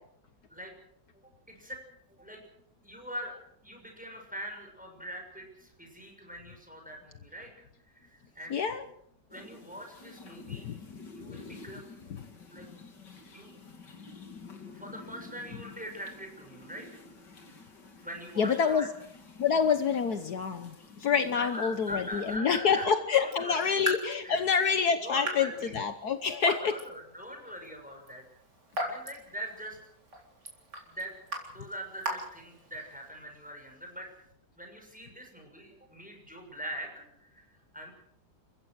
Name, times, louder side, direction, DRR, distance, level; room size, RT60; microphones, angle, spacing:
voice 1, 1.5-1.8 2.2-2.4 2.8-8.6 9.3-10.8 11.2-11.9 12.4-12.7 13.3-13.5 14.7-17.0 17.5-17.6 18.0-18.9 21.3-23.5 24.2-24.4 25.0-25.7 26.6-28.2 28.8-29.8 30.9-31.1 31.5-34.1 34.6-37.9, equal, 5° right, 2 dB, 6.4 m, -42 dB
voice 2, 8.5-8.8 10.5-10.8 11.3-11.4 12.1-12.2 18.4-18.9 19.4-26.8, left 6 dB, 65° left, 9 dB, 1.6 m, -27 dB
sound 1, 9.3-22.4, left 3 dB, 85° left, 3.3 m, -50 dB
Raindrop / Drip, 23.2-33.1, right 1 dB, 75° right, 4.7 m, -40 dB
29.0 x 15.5 x 6.3 m, 0.75 s
omnidirectional pair, 1.8 m